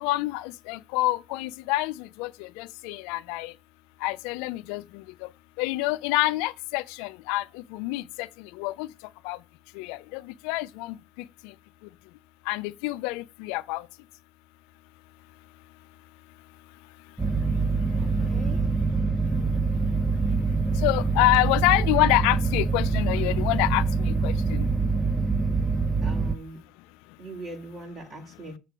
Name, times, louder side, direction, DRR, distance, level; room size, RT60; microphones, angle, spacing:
voice 1, 0.0-3.5 4.0-5.0 5.6-7.4 7.7-8.3 8.6-8.9 9.2-9.4 9.8-10.9 12.5-13.8 20.8-24.7, left 18 dB, 80° left, 0.4 m, -27 dB
sound 1, 17.2-26.3, right 4 dB, 15° right, 0.6 m, -25 dB
voice 2, 18.0-18.6 26.0-26.6 27.2-28.6, right 2 dB, 50° right, 2.5 m, -41 dB
6.6 x 4.5 x 6.1 m
supercardioid pair, 85°, 0 cm